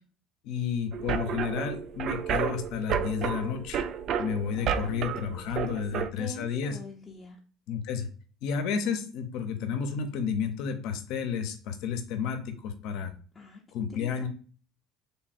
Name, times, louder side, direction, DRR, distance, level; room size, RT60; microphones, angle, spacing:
voice 1, 0.4-3.8 4.2-6.8 7.7-8.1 8.4-13.1 13.7-14.3, left 7 dB, 70° left, 7 dB, 0.8 m, -31 dB
sound 1, 0.9-6.1, right 8 dB, 50° right, 0.4 m, -31 dB
voice 2, 4.6-7.4 13.3-13.6 13.9-14.3, left 2 dB, 20° left, -2 dB, 0.7 m, -45 dB
3.4 x 2.3 x 4.2 m, 0.40 s
cardioid pair, 115°, 0 cm